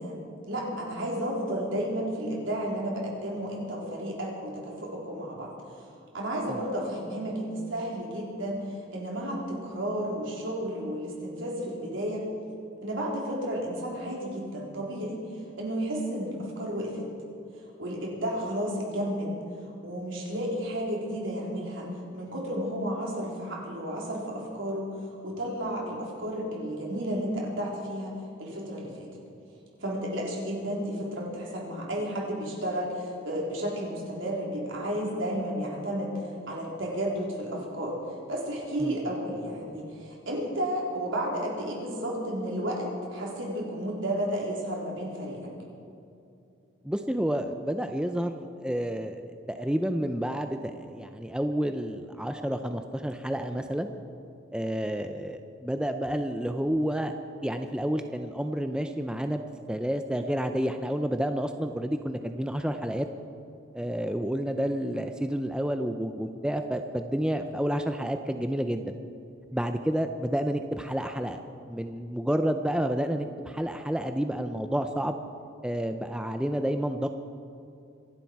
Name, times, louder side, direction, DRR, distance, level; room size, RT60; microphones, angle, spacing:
voice 1, 0.0-5.5 6.1-12.3 12.8-15.2 15.6-17.1 17.8-19.3 19.8-21.9 22.1-24.9 25.2-28.1 28.4-29.1 29.8-38.0 38.3-45.5, equal, 70° right, -3 dB, 4.0 m, -32 dB
voice 2, 46.8-53.9 54.5-57.1 57.4-59.4 59.7-63.1 63.7-69.0 69.5-71.4 71.7-75.2 75.6-77.1, equal, 5° right, 7 dB, 0.5 m, -30 dB
25.5 x 11.5 x 4.7 m, 2.6 s
head